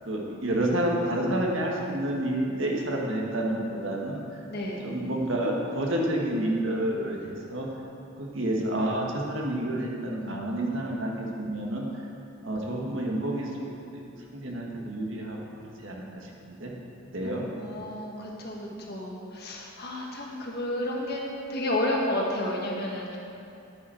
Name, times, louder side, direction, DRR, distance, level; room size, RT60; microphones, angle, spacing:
voice 1, 0.0-4.2 4.8-7.7 8.2-11.9 12.4-13.5 13.9-14.0 14.3-15.4 15.8-16.7 17.1-17.4 18.7-18.8, right 1 dB, 65° right, -1 dB, 1.5 m, -29 dB
voice 2, 17.2-21.2 21.5-23.2, left 1 dB, 50° left, -2 dB, 1.5 m, -31 dB
10.5 x 9.2 x 4.4 m, 2.7 s
head